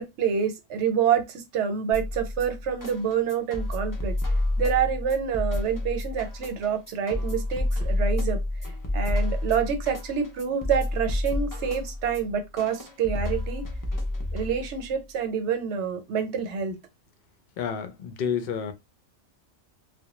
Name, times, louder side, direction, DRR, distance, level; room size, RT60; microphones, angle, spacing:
voice 1, 0.0-4.2 4.6-8.4 8.9-13.6 14.3-16.8, right 7 dB, 75° right, 0.9 m, -27 dB
sound 1, 1.9-14.9, left 1 dB, 35° left, 0.3 m, -29 dB
voice 2, 17.6-18.7, left 7 dB, 60° left, 0.7 m, -29 dB
2.2 x 2.1 x 2.9 m
omnidirectional pair, 1.2 m